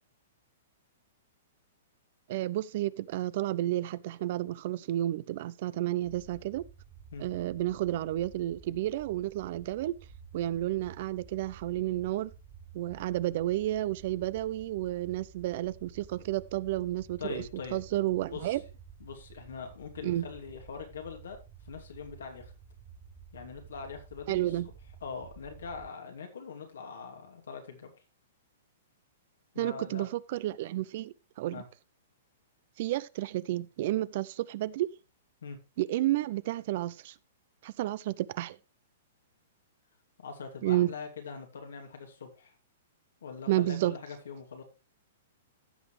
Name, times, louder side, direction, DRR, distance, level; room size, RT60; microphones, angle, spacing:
voice 1, 2.3-6.6 7.2-10.0 10.3-12.3 12.7-17.4 17.7-18.6 20.0-20.3 24.3-24.7 29.6-31.6 32.8-34.9 35.8-37.1 37.6-38.6 40.6-40.9 43.5-43.9, right 14 dB, 55° right, 0.5 m, -31 dB
sound 1, 6.0-25.9, right 7 dB, 15° right, 1.8 m, -52 dB
voice 2, 17.2-17.8 18.3-18.6 19.0-21.4 21.7-22.5 23.3-24.7 25.0-27.9 29.5-30.1 31.5-31.7 35.4-35.6 40.2-42.5 43.2-44.6, left 5 dB, 85° left, 2.7 m, -42 dB
15.0 x 6.0 x 3.2 m
hypercardioid pair, 140°, 0 cm